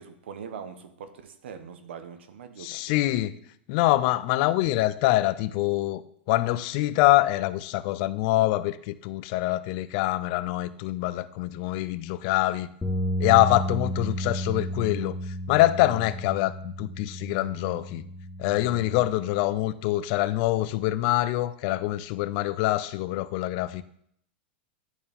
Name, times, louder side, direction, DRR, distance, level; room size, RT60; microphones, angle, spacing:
voice 1, 0.0-3.2 19.5-19.6, right 7 dB, 80° right, 0.9 m, -42 dB
voice 2, 2.6-3.3 3.7-6.0 6.3-12.7 13.2-15.2 15.5-18.0 18.4-23.8, left 16 dB, 50° left, 0.4 m, -25 dB
sound 1, 12.8-19.1, equal, 10° left, 1.1 m, -32 dB
10.5 x 4.5 x 3.5 m
supercardioid pair, 135°, 6 cm